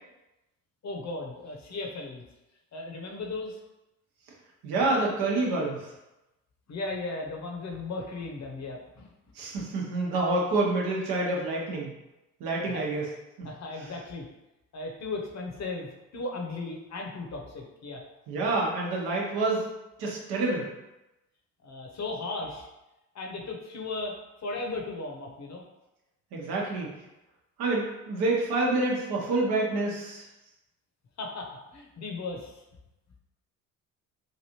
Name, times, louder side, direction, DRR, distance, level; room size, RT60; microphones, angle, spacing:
voice 1, 0.8-2.3 2.7-3.6 6.7-9.1 12.6-12.8 13.4-14.3 14.7-18.0 21.6-22.7 23.1-24.2 24.4-25.6 31.2-32.6, left 3 dB, 45° left, 0 dB, 0.8 m, -36 dB
voice 2, 4.6-5.9 9.3-11.9 12.4-13.1 13.4-13.5 18.3-19.6 20.0-20.7 26.3-26.9 27.6-30.2, right 2 dB, 70° right, -2 dB, 0.9 m, -27 dB
3.2 x 2.5 x 2.9 m, 0.97 s
hypercardioid pair, 60°, 40 cm